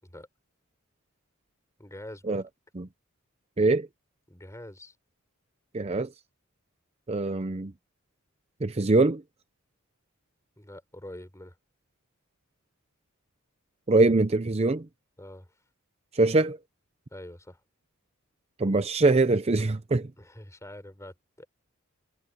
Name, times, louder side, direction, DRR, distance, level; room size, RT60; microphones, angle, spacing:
voice 1, 1.8-2.4 4.3-4.9 10.6-11.5 15.2-15.5 17.1-17.6 20.2-21.5, left 1 dB, 15° left, 5.1 m, -45 dB
voice 2, 5.7-6.1 7.1-7.7 8.6-9.2 13.9-14.9 16.1-16.6 18.6-20.1, right 2 dB, 30° right, 0.7 m, -23 dB
head